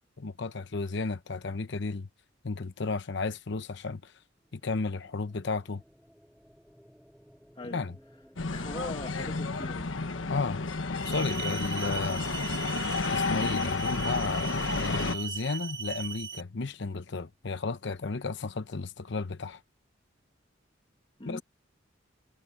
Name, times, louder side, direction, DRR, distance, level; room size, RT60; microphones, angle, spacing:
voice 1, 0.2-2.1 2.4-4.1 4.5-5.8 7.7-7.9 10.3-10.6 11.0-12.2 13.1-19.6 21.2-21.4, left 3 dB, 65° left, 0.8 m, -33 dB
sound 1, 4.4-12.5, equal, ahead, 3.9 m, -60 dB
sound 2, 8.4-15.2, left 3 dB, 85° left, 1.3 m, -31 dB
voice 2, 8.5-10.2 21.2-21.4, left 1 dB, 30° left, 1.8 m, -41 dB
sound 3, 11.0-16.4, right 7 dB, 20° right, 3.7 m, -39 dB
head